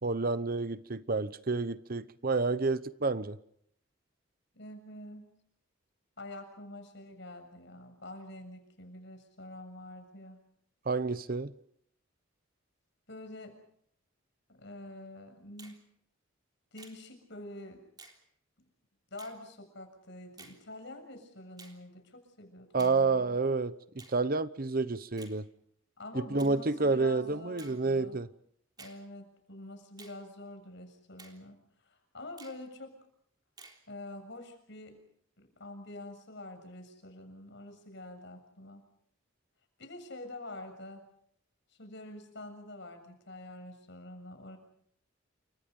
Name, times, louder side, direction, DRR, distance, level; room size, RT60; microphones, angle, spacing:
voice 1, 0.0-3.4 10.9-11.5 22.7-25.5 26.1-28.3, right 3 dB, 45° right, 0.9 m, -29 dB
voice 2, 4.5-5.3 6.2-10.4 13.1-13.6 14.5-15.8 16.7-17.8 19.1-23.4 26.0-28.2 28.8-31.6 31.8-32.9 33.9-35.0 35.4-38.8 39.8-41.0 41.7-44.6, left 1 dB, 60° left, 7.1 m, -46 dB
Finger snapping, 15.6-15.8 16.8-17.0 18.0-18.2 19.2-19.4 20.4-20.6 21.6-21.8 22.8-23.0 24.0-24.2 25.2-25.4 26.4-26.6 27.6-27.8 28.8-29.0 30.0-30.2 31.2-31.4 32.4-32.6 33.6-33.8, right 4 dB, 20° right, 3.5 m, -52 dB
29.0 x 25.5 x 5.5 m
head